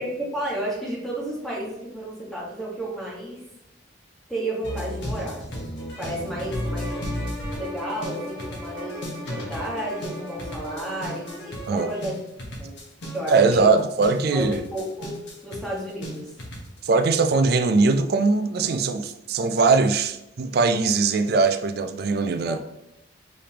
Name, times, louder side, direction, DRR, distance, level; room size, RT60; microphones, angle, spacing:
voice 1, 0.0-3.4 4.3-7.0 7.6-12.2 12.6-12.7 13.1-13.8 14.3-15.2 15.4-16.4 22.4-22.6, right 1 dB, ahead, 1.3 m, -32 dB
sound 1, 4.6-16.8, equal, 65° left, 1.2 m, -34 dB
sound 2, 6.2-11.6, left 1 dB, 30° right, 1.0 m, -39 dB
voice 2, 13.3-14.6 16.8-22.6, right 4 dB, 55° right, 0.4 m, -21 dB
5.0 x 3.5 x 2.8 m
head